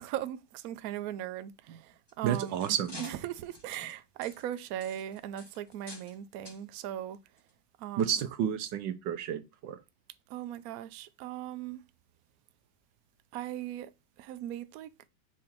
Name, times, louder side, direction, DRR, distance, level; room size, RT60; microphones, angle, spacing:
voice 1, 0.0-7.2 7.8-8.1 10.3-11.8 13.3-13.9 14.2-14.9, right 12 dB, 85° right, 0.7 m, -39 dB
sound 1, 1.9-6.2 6.4-6.6 7.4-7.5 8.0-8.1, left 2 dB, 20° left, 0.8 m, -49 dB
voice 2, 2.2-3.0 8.0-9.8, right 9 dB, 70° right, 1.3 m, -31 dB
6.0 x 3.7 x 4.3 m
omnidirectional pair, 2.2 m